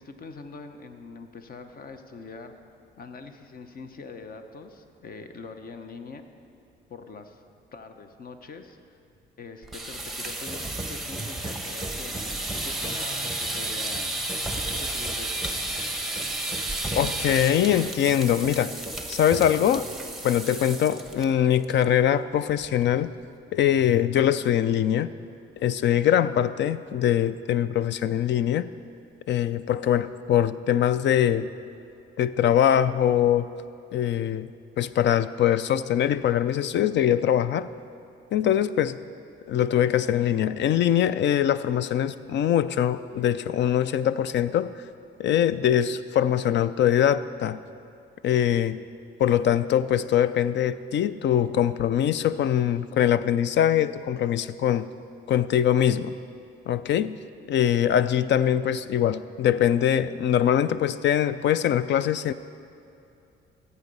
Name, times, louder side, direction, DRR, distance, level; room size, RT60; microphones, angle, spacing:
voice 1, 0.0-2.6 3.0-6.2 6.9-7.4 7.7-9.0 9.4-14.2 14.6-15.5, left 4 dB, 45° left, 7 dB, 1.0 m, -43 dB
sound 1, 9.6-21.3 21.6-21.9 22.2-22.3 22.6-23.0, right 2 dB, ahead, 1.1 m, -32 dB
voice 2, 16.9-18.7 19.1-19.9 20.2-23.1 23.5-25.1 25.6-28.7 29.3-31.5 32.2-33.5 33.9-34.5 34.8-37.7 38.3-39.0 39.5-44.7 45.2-47.6 48.2-48.8 49.2-54.9 55.3-56.1 56.7-57.2 57.5-62.3, left 10 dB, 65° left, 15 dB, 0.5 m, -23 dB
14.5 x 8.2 x 5.5 m, 2.6 s
cardioid pair, 90°, 20 cm